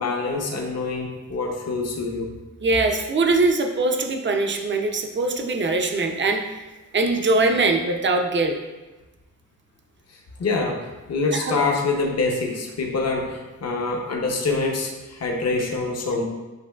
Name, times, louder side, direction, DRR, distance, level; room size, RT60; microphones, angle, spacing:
voice 1, 0.0-2.3 10.1-16.2, left 3 dB, 55° left, 0 dB, 0.7 m, -25 dB
voice 2, 2.6-6.4 6.9-8.6 11.3-11.6, right 3 dB, 35° right, 4 dB, 0.4 m, -22 dB
7.3 x 3.0 x 2.3 m, 1.1 s
wide cardioid pair, 165°, 32 cm